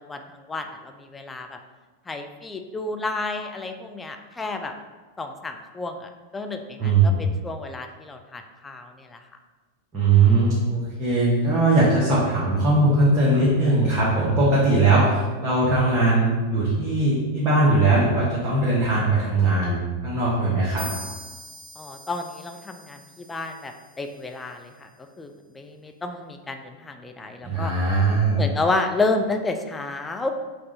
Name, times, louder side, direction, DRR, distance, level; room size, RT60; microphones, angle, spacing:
voice 1, 0.1-1.6 2.1-4.7 5.2-9.2 21.8-24.9 25.2-27.7 28.3-30.3, left 2 dB, 15° left, 5 dB, 0.3 m, -31 dB
voice 2, 6.8-7.2 9.9-20.9 27.4-28.4, right 2 dB, 30° right, -9 dB, 1.1 m, -20 dB
sound 1, 20.8-24.4, right 1 dB, 35° left, 1.3 m, -43 dB
4.7 x 2.4 x 3.8 m, 1.3 s
figure-of-eight pair, 90°, 0 cm